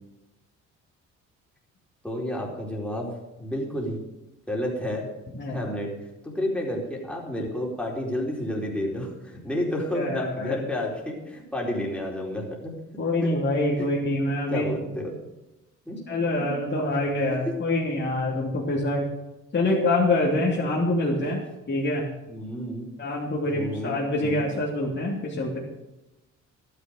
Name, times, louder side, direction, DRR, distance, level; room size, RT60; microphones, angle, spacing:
voice 1, 2.0-3.1 3.4-4.0 4.5-5.1 5.5-5.9 6.2-12.7 13.2-13.3 13.8-13.9 14.5-15.1 15.8-16.0 16.4-16.5 17.4-17.5 20.6-20.7 21.1-21.3 22.3-22.9 23.4-24.5, left 1 dB, 5° left, -2 dB, 4.6 m, -30 dB
voice 2, 5.4-5.7 9.9-10.6 13.0-14.9 16.1-19.1 19.5-21.4 21.7-22.1 23.0-25.6, left 2 dB, 35° left, -3 dB, 3.0 m, -25 dB
12.5 x 10.5 x 6.6 m, 0.97 s
cardioid pair, 90°, 30 cm